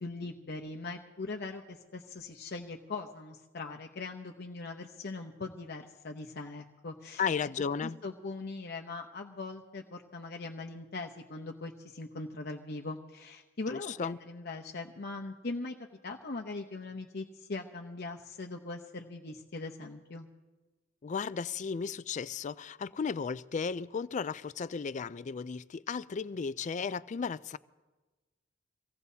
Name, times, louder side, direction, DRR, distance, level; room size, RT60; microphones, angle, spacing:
voice 1, 0.0-7.3 7.8-15.7 16.0-20.3, left 3 dB, 60° left, 0.8 m, -41 dB
voice 2, 7.2-8.0 13.7-14.2 21.0-27.6, left 6 dB, 40° left, 0.4 m, -34 dB
24.5 x 17.0 x 2.8 m
head